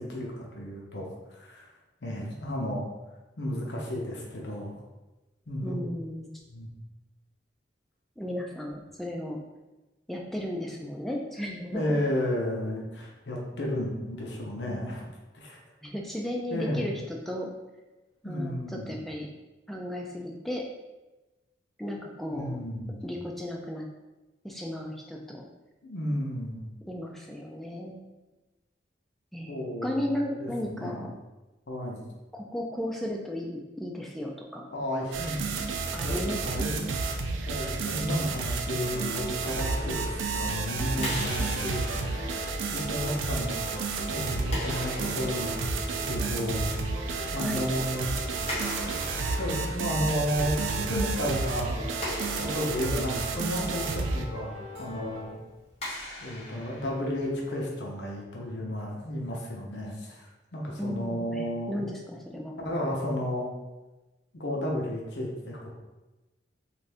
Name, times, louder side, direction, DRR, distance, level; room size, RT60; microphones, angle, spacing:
voice 1, 0.0-1.7 2.0-2.9 3.4-4.8 5.5-5.8 6.5-6.7 11.7-15.0 15.3-15.6 16.5-16.8 18.2-18.9 22.3-23.1 25.8-26.7 29.5-30.0 30.4-31.1 31.7-32.1 34.7-35.7 36.0-36.9 37.4-42.3 42.7-46.8 47.3-48.1 49.4-50.5 50.9-51.8 52.4-54.5 54.8-55.4 56.2-61.8 62.6-63.5 64.3-65.7, left 1 dB, 65° left, -2 dB, 0.7 m, -33 dB
voice 2, 5.6-6.3 8.2-9.4 10.1-12.0 15.8-17.5 18.2-19.3 19.7-20.7 21.8-22.6 23.0-23.9 24.4-25.5 26.9-28.0 29.3-29.6 29.8-31.1 32.3-34.7 35.5-35.7 35.9-36.9 47.4-47.6 60.8-62.6, left 1 dB, ahead, -1 dB, 0.3 m, -35 dB
sound 1, 35.1-54.2, right 4 dB, 90° right, 0.4 m, -31 dB
sound 2, 38.8-55.3, left 1 dB, 55° right, 0.8 m, -42 dB
Clapping, 41.0-57.6, left 1 dB, 35° left, 1.1 m, -42 dB
2.6 x 2.5 x 3.3 m, 1.1 s
head